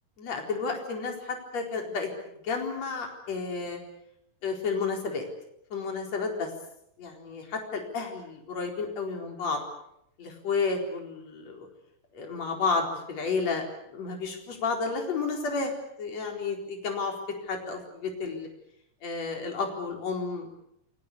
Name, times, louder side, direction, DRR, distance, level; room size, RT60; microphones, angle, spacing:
voice 1, 0.2-2.1 2.4-3.8 4.4-5.2 5.7-6.5 7.0-9.6 10.2-11.7 12.1-13.6 13.9-15.7 16.0-17.1 17.4-18.5 19.0-20.5, left 4 dB, 55° left, 2 dB, 5.4 m, -31 dB
28.5 x 21.5 x 8.6 m, 0.77 s
omnidirectional pair, 3.7 m